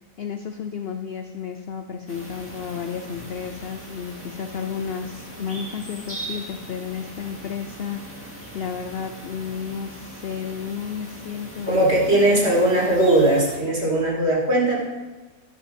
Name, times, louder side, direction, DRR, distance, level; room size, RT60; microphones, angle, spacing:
voice 1, 0.2-11.8 12.3-12.7, left 7 dB, 60° left, 7 dB, 0.6 m, -32 dB
sound 1, 2.1-13.6, right 1 dB, 10° right, 2.1 m, -40 dB
voice 2, 11.6-14.8, right 1 dB, 40° right, -3 dB, 2.8 m, -19 dB
12.0 x 5.4 x 6.9 m, 1.2 s
omnidirectional pair, 1.7 m